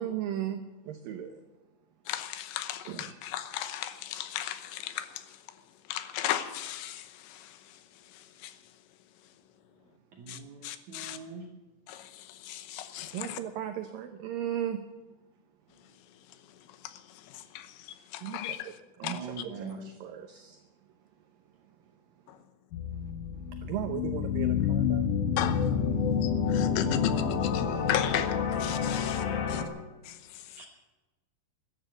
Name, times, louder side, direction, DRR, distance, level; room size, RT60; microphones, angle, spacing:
voice 1, 0.0-1.4 2.9-3.0 13.1-14.8 18.2-18.4 19.0-19.2 20.0-20.6 23.6-25.1, right 10 dB, 85° right, 2.0 m, -35 dB
voice 2, 2.1-5.4 5.9-7.8 8.1-8.6 10.3-11.2 11.9-13.4 16.7-18.8 19.0-19.2 22.3-22.4 25.4-25.8 26.2-29.6 30.0-30.7, left 11 dB, 85° left, 3.2 m, -36 dB
voice 3, 10.1-11.5 19.0-19.8 30.6-30.7, right 4 dB, 65° right, 1.9 m, -42 dB
sound 1, 22.7-29.6, left 7 dB, 65° left, 2.2 m, -28 dB
13.5 x 11.5 x 7.9 m
omnidirectional pair, 5.2 m